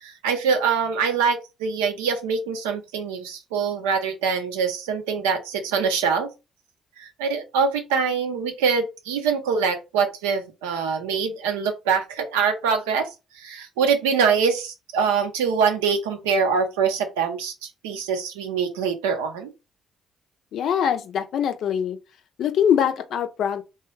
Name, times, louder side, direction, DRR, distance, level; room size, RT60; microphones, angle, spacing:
voice 1, 0.0-6.3 7.0-13.1 13.3-19.5, right 6 dB, 80° right, 0.5 m, -24 dB
voice 2, 20.5-22.0 22.4-23.6, left 8 dB, 65° left, 0.4 m, -23 dB
3.0 x 2.3 x 3.0 m
hypercardioid pair, 45°, 0 cm